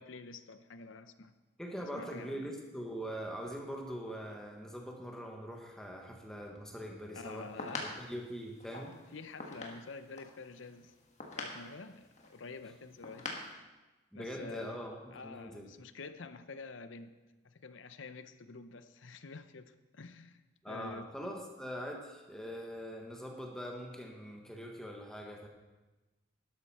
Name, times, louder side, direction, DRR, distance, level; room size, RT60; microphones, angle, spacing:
voice 1, 0.0-1.3 1.8-2.6 7.1-7.9 9.1-10.9 11.4-13.7 14.1-17.2 17.4-21.1, left 3 dB, 75° left, 11 dB, 0.7 m, -48 dB
voice 2, 1.6-7.5 7.8-9.0 14.1-15.7 20.6-25.5, equal, 5° left, 1 dB, 1.2 m, -42 dB
sound 1, 7.2-13.5, left 2 dB, 35° left, 1.6 m, -45 dB
12.5 x 12.0 x 4.3 m, 1.2 s
head